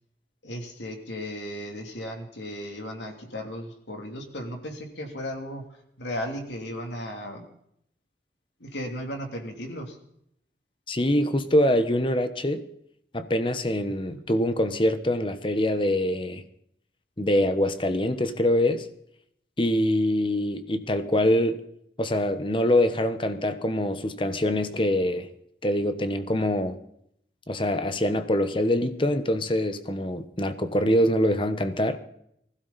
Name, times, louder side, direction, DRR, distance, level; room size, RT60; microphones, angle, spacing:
voice 1, 0.4-5.7 6.0-7.4 8.6-10.0 14.1-14.2, equal, 90° left, 3.1 m, -35 dB
voice 2, 10.9-12.6 13.1-16.4 17.2-18.9 19.6-21.6 22.0-25.3 25.6-26.8 27.5-32.0, left 1 dB, 30° left, 1.1 m, -24 dB
20.0 x 16.0 x 4.2 m
head